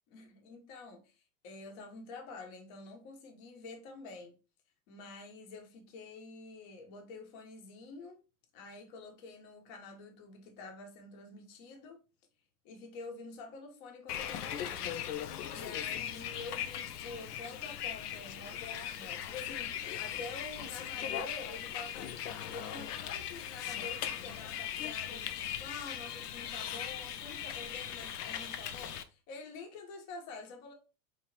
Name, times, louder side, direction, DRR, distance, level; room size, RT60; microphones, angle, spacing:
voice 1, 0.1-4.3 4.9-8.2 8.5-12.0 12.6-15.0 15.5-22.2 22.5-30.7, left 3 dB, 50° left, 1.2 m, -48 dB
Bus, 14.1-29.0, left 10 dB, 85° left, 0.6 m, -39 dB
3.6 x 3.0 x 2.9 m
hypercardioid pair, 115°, 45 cm